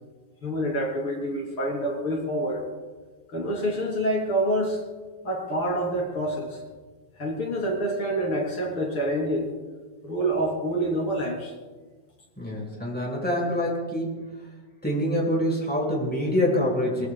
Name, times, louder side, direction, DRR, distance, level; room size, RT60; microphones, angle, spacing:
voice 1, 0.4-2.6 3.3-4.8 5.2-6.6 7.2-9.5 10.0-11.5, right 1 dB, 40° left, -1 dB, 3.5 m, -27 dB
voice 2, 12.4-14.2 14.8-17.1, left 1 dB, 5° left, -3 dB, 5.5 m, -25 dB
23.5 x 22.0 x 2.3 m, 1.3 s
omnidirectional pair, 4.0 m